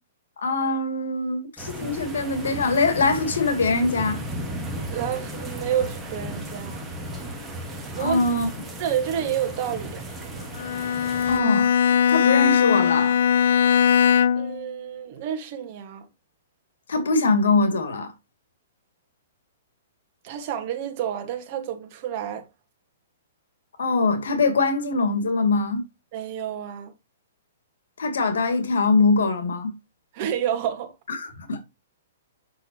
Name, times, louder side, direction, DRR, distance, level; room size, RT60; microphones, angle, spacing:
voice 1, 0.4-4.2 8.0-8.5 11.3-11.7 12.1-13.2 16.9-18.1 23.8-25.8 28.0-29.7 31.1-31.6, left 3 dB, 90° left, 2.5 m, -22 dB
sound 1, 1.6-11.4, right 1 dB, 5° right, 1.6 m, -35 dB
voice 2, 4.9-6.9 8.0-8.2 8.8-10.1 14.3-16.0 20.2-22.4 26.1-26.9 30.1-30.9, right 9 dB, 30° right, 1.8 m, -29 dB
Bowed string instrument, 10.6-14.6, left 8 dB, 60° left, 0.4 m, -20 dB
8.2 x 6.4 x 3.0 m
hypercardioid pair, 175°, 0 cm